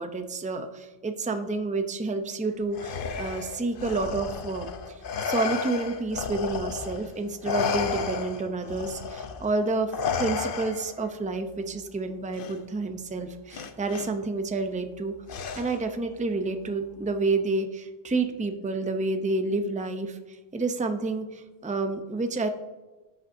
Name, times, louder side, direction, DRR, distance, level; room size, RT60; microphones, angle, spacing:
voice 1, 0.0-4.7 5.2-9.9 10.2-15.1 15.5-20.2 20.5-22.5, right 3 dB, 10° right, 6 dB, 0.4 m, -29 dB
Respiratory sounds, 2.7-7.1 7.4-11.1 12.3-12.5 13.5-14.1 15.3-15.9, left 5 dB, 60° left, 0.8 m, -32 dB
15.5 x 5.5 x 2.6 m, 1.2 s
omnidirectional pair, 1.1 m